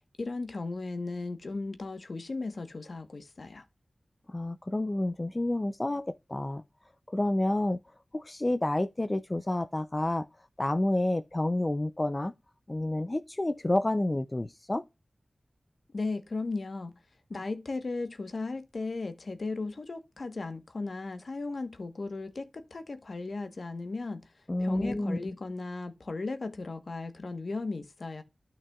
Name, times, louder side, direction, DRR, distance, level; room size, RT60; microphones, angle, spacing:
voice 1, 0.2-3.6 15.9-17.0 17.3-24.3 24.6-28.2, left 3 dB, 70° left, 1.2 m, -36 dB
voice 2, 4.3-6.6 7.1-7.8 8.1-10.3 10.6-12.3 12.7-14.8 24.5-25.3, left 1 dB, 30° left, 0.5 m, -29 dB
12.5 x 5.9 x 2.4 m
wide cardioid pair, 75°, 0 cm